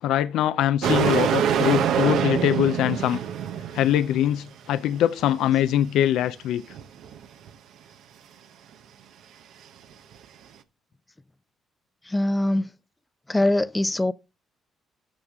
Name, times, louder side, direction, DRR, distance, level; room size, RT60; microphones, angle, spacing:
voice 1, 0.0-3.2 3.7-6.6, left 11 dB, 85° left, 0.4 m, -23 dB
sound 1, 0.8-4.3 5.2-5.3 5.6-5.7 6.7-7.5 10.1-10.2, right 8 dB, 80° right, 0.8 m, -25 dB
voice 2, 12.0-12.7 13.3-14.1, left 1 dB, 15° left, 0.4 m, -22 dB
13.0 x 6.4 x 3.5 m
cardioid pair, 90°, 0 cm